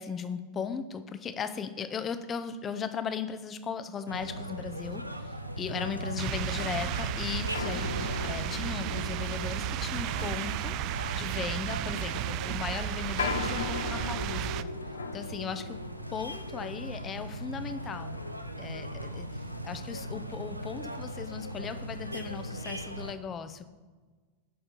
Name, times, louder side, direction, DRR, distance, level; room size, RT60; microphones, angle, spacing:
voice 1, 0.0-14.7 15.1-15.8 16.1-18.2 18.6-23.7, left 6 dB, 25° left, 11 dB, 0.6 m, -37 dB
sound 1, 4.1-23.1, equal, 90° right, 0.6 m, -39 dB
sound 2, 6.2-14.6, right 14 dB, 40° right, 0.3 m, -34 dB
sound 3, 7.5-19.5 19.8-19.9 20.5-20.7, left 6 dB, 65° left, 0.5 m, -40 dB
7.7 x 5.9 x 6.6 m, 1.4 s
figure-of-eight pair, 90°, 0 cm